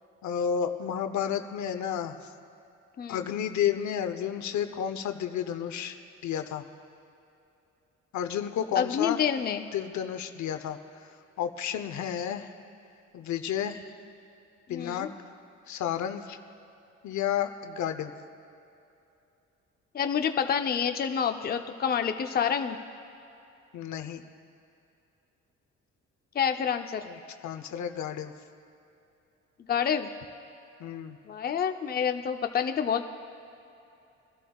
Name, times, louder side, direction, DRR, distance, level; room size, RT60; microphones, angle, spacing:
voice 1, 0.2-2.3 3.1-6.6 8.1-9.2 9.7-12.5 13.1-13.9 14.7-15.1 15.7-16.4 17.0-18.1 23.7-24.2 27.0-28.3 30.8-31.2, left 9 dB, 70° left, 8 dB, 0.8 m, -31 dB
voice 2, 8.8-9.7 14.7-15.1 19.9-22.8 26.3-27.0 29.7-30.1 31.3-33.0, left 7 dB, 30° left, 6 dB, 0.6 m, -28 dB
23.5 x 12.5 x 2.3 m, 2.7 s
cardioid pair, 90°, 30 cm